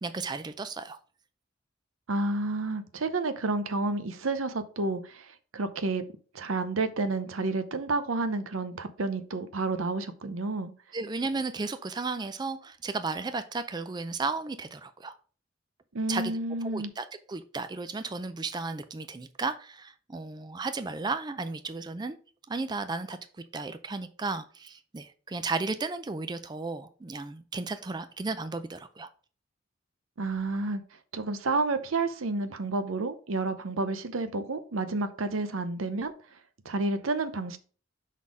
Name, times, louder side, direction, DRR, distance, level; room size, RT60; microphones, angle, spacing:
voice 1, 0.0-1.0 10.9-15.1 16.1-16.3 16.6-22.2 22.5-23.2 23.5-29.1, right 3 dB, 20° right, 0.4 m, -34 dB
voice 2, 2.1-6.0 6.3-10.7 15.9-16.9 30.2-30.8 31.1-36.1 36.6-37.6, right 3 dB, 90° right, 0.7 m, -30 dB
5.5 x 4.1 x 4.8 m
head